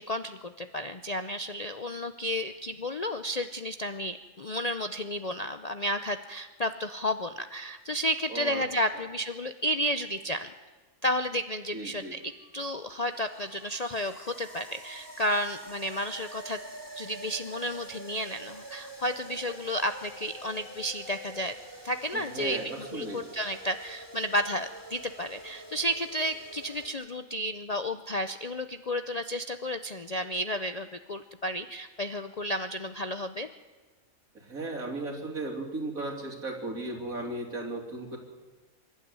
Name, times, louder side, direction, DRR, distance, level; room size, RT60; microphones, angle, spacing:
voice 1, 0.0-10.5 11.0-12.2 12.5-16.6 17.0-21.5 21.8-33.5, equal, 45° left, 9 dB, 0.5 m, -32 dB
voice 2, 8.3-8.6 8.9-9.0 11.7-12.2 22.1-23.2 34.3-38.2, right 2 dB, 75° right, 1 dB, 3.5 m, -36 dB
sound 1, 12.2-26.9, right 1 dB, 15° right, 3.1 m, -46 dB
25.5 x 12.0 x 9.6 m, 1.3 s
omnidirectional pair, 1.5 m